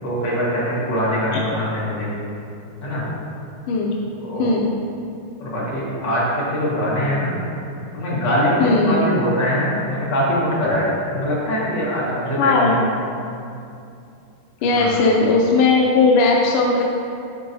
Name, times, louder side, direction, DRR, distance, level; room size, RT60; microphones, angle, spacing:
voice 1, 0.0-2.2 2.8-3.1 4.2-4.6 5.4-7.4 7.9-12.8 14.7-15.0, equal, 55° left, -7 dB, 2.0 m, -22 dB
voice 2, 8.6-9.0 12.4-12.8 14.6-16.8, left 3 dB, 90° left, -1 dB, 1.5 m, -17 dB
9.9 x 3.7 x 2.6 m, 2.6 s
omnidirectional pair, 2.4 m